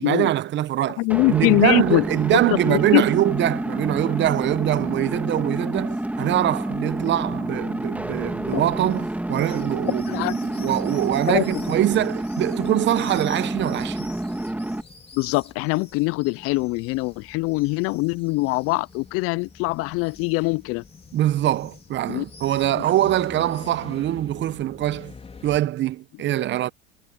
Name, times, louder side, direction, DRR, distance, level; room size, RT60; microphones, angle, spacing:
voice 1, 0.0-1.0 1.3-14.1 21.1-25.1 25.4-26.7, right 13 dB, 35° right, 0.8 m, -23 dB
voice 2, 1.0-2.0 2.5-3.0 8.5-8.6 10.1-10.3 11.3-11.6 15.1-20.8 22.1-22.2, left 24 dB, 45° left, 0.5 m, -23 dB
sound 1, 1.1-14.8, right 1 dB, 5° right, 2.7 m, -29 dB
sound 2, 8.5-25.6, left 5 dB, 15° left, 3.4 m, -46 dB
hypercardioid pair, 100°, 34 cm